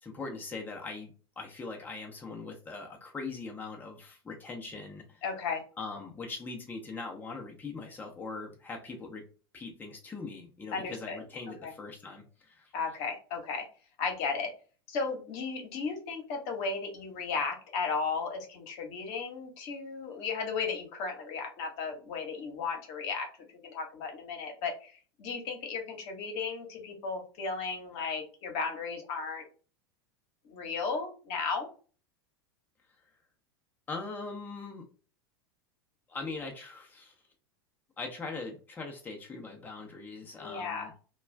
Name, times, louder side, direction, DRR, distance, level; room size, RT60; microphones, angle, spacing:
voice 1, 0.0-5.2 5.8-9.2 9.5-12.7 33.9-34.8 36.1-37.1 38.0-40.9, left 3 dB, 15° left, 0 dB, 0.6 m, -41 dB
voice 2, 5.2-5.6 10.7-11.2 11.6-11.7 12.7-13.6 14.0-14.5 14.9-23.3 23.6-24.9 25.2-29.4 30.4-31.7 40.4-40.9, left 5 dB, 55° left, 3 dB, 1.0 m, -35 dB
2.3 x 2.3 x 3.2 m, 0.38 s
hypercardioid pair, 95°, 13 cm